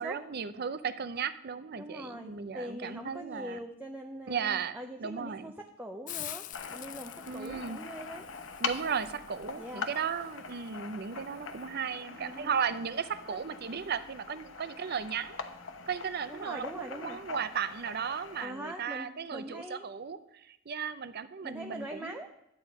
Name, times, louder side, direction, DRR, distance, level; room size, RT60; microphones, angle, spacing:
voice 1, 0.0-3.6 4.3-5.5 7.3-7.8 8.6-15.4 15.9-20.2 20.5-22.2, right 6 dB, 55° right, 13 dB, 0.6 m, -35 dB
voice 2, 1.7-8.3 9.5-9.9 12.2-12.6 13.3-13.4 16.3-17.2 18.4-19.9 21.4-22.3, right 1 dB, 10° right, 2 dB, 0.7 m, -42 dB
Hiss, 6.1-11.7, left 13 dB, 40° left, 0.3 m, -47 dB
sound 1, 6.5-18.5, left 5 dB, 75° left, 0.9 m, -43 dB
11.5 x 8.5 x 4.9 m, 0.83 s
head